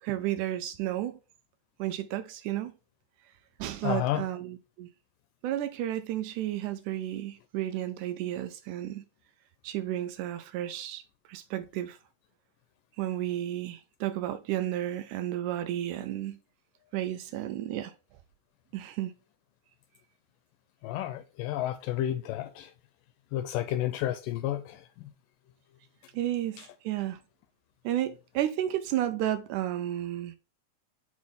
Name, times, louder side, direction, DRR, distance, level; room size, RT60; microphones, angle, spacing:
voice 1, 0.0-1.2 1.8-2.7 3.6-4.9 5.4-9.0 9.6-11.0 11.3-12.0 13.0-16.4 16.9-17.9 18.7-19.1 26.1-27.2 27.8-30.4, right 13 dB, 80° right, 1.8 m, -32 dB
voice 2, 3.8-4.3 20.8-22.7 23.3-24.9, left 13 dB, 80° left, 2.1 m, -31 dB
6.2 x 4.7 x 3.5 m
omnidirectional pair, 4.1 m